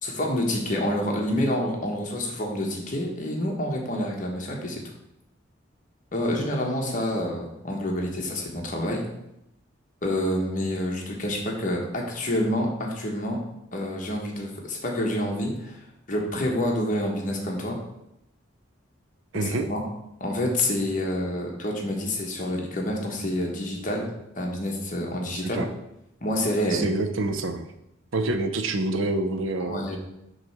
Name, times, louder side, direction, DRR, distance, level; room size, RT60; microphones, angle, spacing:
voice 1, 0.0-4.8 6.1-9.0 10.0-13.4 13.7-15.8 16.1-17.8 19.3-19.8 20.2-24.1 24.4-25.6 26.2-26.9 29.6-30.0, left 1 dB, 40° left, 0 dB, 1.2 m, -28 dB
voice 2, 19.3-19.7 25.4-25.7 26.7-27.6 28.1-30.0, right 2 dB, 75° right, 8 dB, 0.6 m, -27 dB
6.4 x 3.2 x 5.9 m, 0.84 s
head